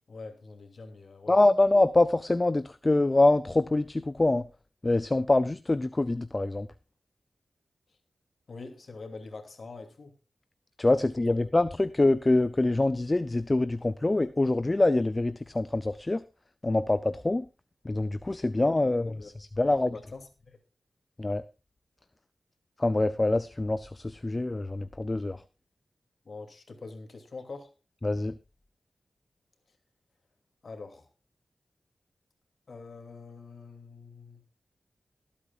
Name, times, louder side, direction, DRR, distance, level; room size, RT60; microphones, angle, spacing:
voice 1, 0.0-1.4 8.5-10.1 11.3-11.5 18.5-19.3 19.6-20.6 26.2-27.7 30.6-31.1 32.7-34.4, left 3 dB, 65° left, 5 dB, 2.7 m, -45 dB
voice 2, 1.3-4.5 4.8-6.7 10.8-16.2 16.6-17.5 17.8-19.9 21.2-21.4 22.8-25.4 28.0-28.4, left 2 dB, 30° left, 14 dB, 0.6 m, -25 dB
23.0 x 8.6 x 2.5 m, 0.29 s
cardioid pair, 55°, 0 cm